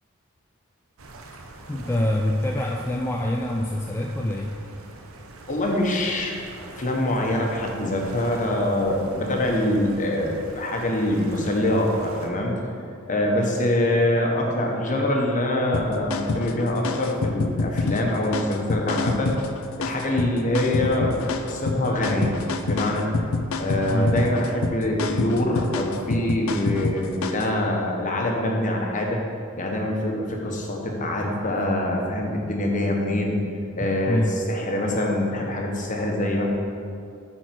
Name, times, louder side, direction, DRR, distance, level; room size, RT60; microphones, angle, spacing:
sound 1, 1.0-12.3, right 2 dB, 85° right, 0.8 m, -44 dB
voice 1, 1.7-4.5 23.9-24.2 33.8-34.3, left 1 dB, 10° left, 0 dB, 0.4 m, -25 dB
voice 2, 5.5-6.4 6.7-12.5 13.1-19.4 19.8-22.4 22.6-23.1 23.6-29.2 29.6-33.4 33.8-36.4, left 1 dB, 40° left, 0 dB, 1.2 m, -24 dB
sound 2, 15.7-27.5, left 3 dB, 75° left, 0.5 m, -27 dB
8.9 x 4.4 x 6.1 m, 2.4 s
head